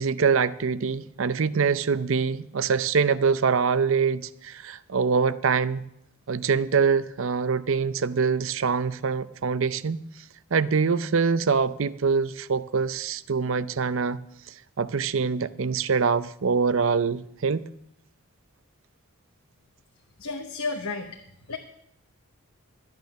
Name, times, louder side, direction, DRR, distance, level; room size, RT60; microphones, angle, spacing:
voice 1, 0.0-5.8 6.3-10.0 10.5-14.2 14.8-17.7, right 5 dB, 65° right, 0.5 m, -24 dB
voice 2, 20.2-21.2 21.5-21.6, left 3 dB, 75° left, 1.1 m, -32 dB
13.0 x 9.4 x 6.5 m
head